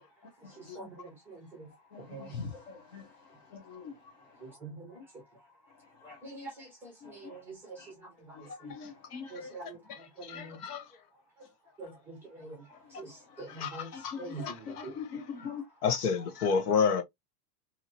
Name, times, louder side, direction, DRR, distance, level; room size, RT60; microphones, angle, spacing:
voice 1, 0.7-1.4 2.1-2.3 4.6-5.0 6.0-7.4 7.7-7.8 9.3-9.8 10.2-10.6 11.8-12.6 13.0-13.1 13.4-13.9 14.2-14.9, right 3 dB, 5° right, 0.7 m, -44 dB
voice 2, 1.9-3.1 3.5-3.9 7.0-7.3 7.8-7.9 8.4-9.4 13.9-15.6, left 6 dB, 35° left, 0.6 m, -42 dB
voice 3, 9.1-9.5 9.9-10.8 13.6-14.2 14.4-14.9 15.8-17.0, left 6 dB, 65° left, 1.0 m, -30 dB
2.9 x 2.7 x 2.5 m
supercardioid pair, 175°, 49 cm